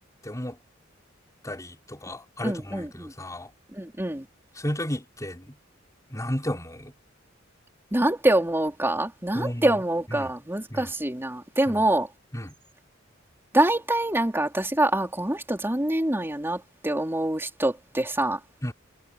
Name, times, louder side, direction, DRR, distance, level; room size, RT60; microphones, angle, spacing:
voice 1, 0.2-0.6 1.4-3.5 4.6-5.6 6.1-6.9 9.3-9.8 10.1-10.3 10.7-10.9 11.7-11.9 12.3-12.5 18.6-18.7, equal, 15° left, 4.4 m, -33 dB
voice 2, 2.4-3.1 3.8-4.2 7.9-12.1 13.5-18.4, right 1 dB, 10° right, 3.7 m, -25 dB
head